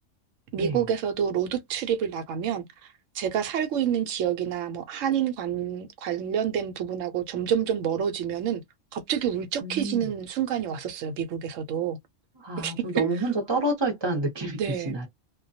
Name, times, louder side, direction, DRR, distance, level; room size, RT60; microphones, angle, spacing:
voice 1, 0.5-2.6 3.1-8.6 8.9-12.0 12.6-13.0 14.6-15.1, right 9 dB, 90° right, 1.0 m, -28 dB
voice 2, 9.6-10.1 12.4-14.6 14.8-15.1, right 2 dB, 25° right, 0.6 m, -28 dB
2.2 x 2.2 x 2.5 m
omnidirectional pair, 1.3 m